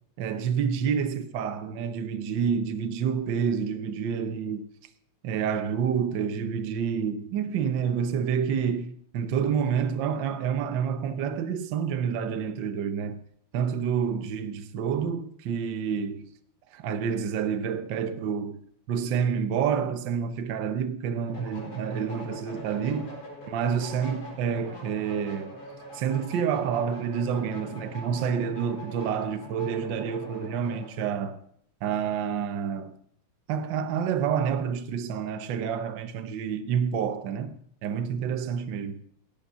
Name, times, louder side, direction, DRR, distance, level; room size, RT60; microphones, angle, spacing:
voice 1, 0.2-4.7 5.2-13.2 13.5-16.3 16.7-18.6 18.9-23.2 23.5-25.5 25.9-31.4 31.8-32.9 33.5-37.6 37.8-39.0, right 7 dB, 80° right, 1.0 m, -28 dB
sound 1, 21.3-30.9, equal, 65° left, 5.9 m, -43 dB
17.0 x 8.9 x 5.6 m
omnidirectional pair, 3.4 m